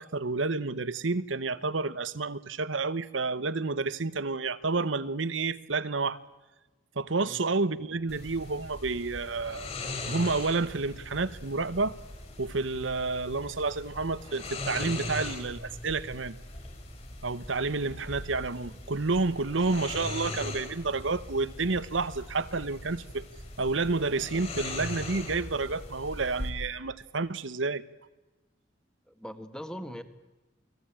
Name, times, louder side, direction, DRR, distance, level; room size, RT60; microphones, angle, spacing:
voice 1, 0.0-6.2 7.0-9.7 10.1-12.0 12.4-16.4 17.2-23.2 23.6-27.8, right 3 dB, 80° right, 1.1 m, -30 dB
sound 1, 8.1-26.5, left 2 dB, 35° left, 6.3 m, -40 dB
voice 2, 29.1-30.0, equal, 5° left, 1.8 m, -41 dB
29.5 x 20.0 x 9.0 m
head